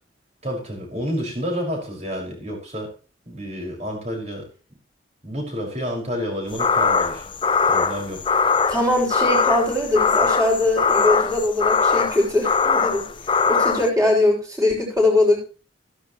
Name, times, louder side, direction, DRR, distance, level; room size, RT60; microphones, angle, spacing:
voice 1, 0.4-2.9 3.3-4.5 5.2-7.3 7.7-8.3, equal, 35° right, 0 dB, 5.7 m, -29 dB
sound 1, 6.5-13.9, left 5 dB, 25° left, 0.6 m, -21 dB
voice 2, 8.7-13.0 13.5-15.4, left 2 dB, 20° right, -3 dB, 6.2 m, -21 dB
14.5 x 11.5 x 3.1 m, 0.35 s
head